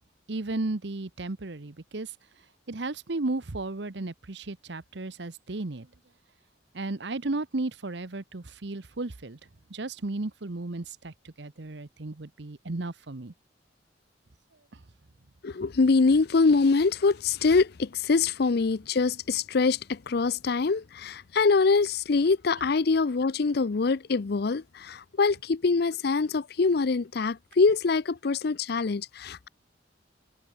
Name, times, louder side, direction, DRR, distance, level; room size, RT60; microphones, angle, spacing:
voice 1, 0.3-2.1 2.7-5.9 6.7-9.4 9.7-13.3, right 2 dB, 60° right, 1.0 m, -34 dB
voice 2, 15.4-29.5, left 4 dB, 55° left, 0.5 m, -24 dB
head